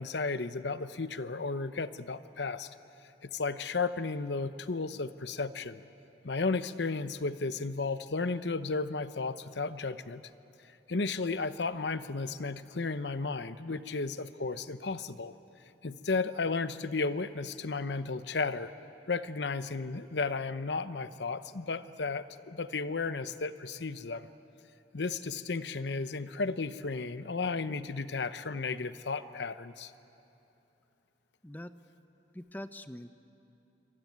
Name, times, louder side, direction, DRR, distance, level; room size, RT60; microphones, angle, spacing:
voice 1, 0.0-2.7 3.2-5.8 6.2-10.2 10.9-15.3 15.8-18.7 19.1-24.3 24.9-29.9, left 4 dB, 80° left, 12 dB, 0.8 m, -34 dB
voice 2, 31.4-31.8 32.3-33.1, left 1 dB, 10° left, 10 dB, 0.7 m, -44 dB
25.0 x 24.0 x 9.4 m, 2.9 s
head